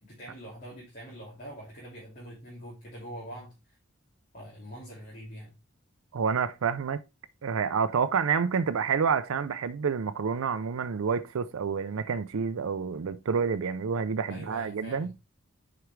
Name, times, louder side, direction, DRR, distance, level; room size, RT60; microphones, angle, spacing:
voice 1, 0.0-3.8 4.3-5.5 14.3-15.1, equal, 40° left, 2.5 m, -44 dB
voice 2, 6.1-7.0 7.4-15.1, right 6 dB, 80° right, 0.5 m, -28 dB
7.9 x 5.0 x 3.2 m
head